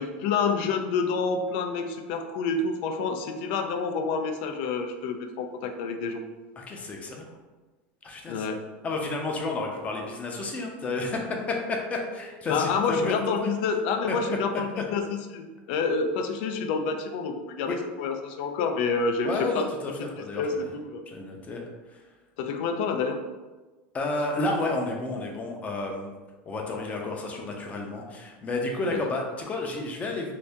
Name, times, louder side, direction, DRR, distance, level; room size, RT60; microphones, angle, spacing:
voice 1, 0.0-6.2 8.3-8.6 12.5-19.7 20.3-21.0 22.4-23.2, left 4 dB, 70° left, 5 dB, 0.4 m, -28 dB
voice 2, 6.6-7.3 8.0-8.5 8.8-13.2 14.1-14.2 17.7-17.8 19.2-20.6 21.1-21.6 21.9-22.0 23.9-26.1 26.4-30.3, left 2 dB, 25° left, 1 dB, 0.6 m, -31 dB
2.7 x 2.6 x 3.4 m, 1.2 s
supercardioid pair, 130°, 6 cm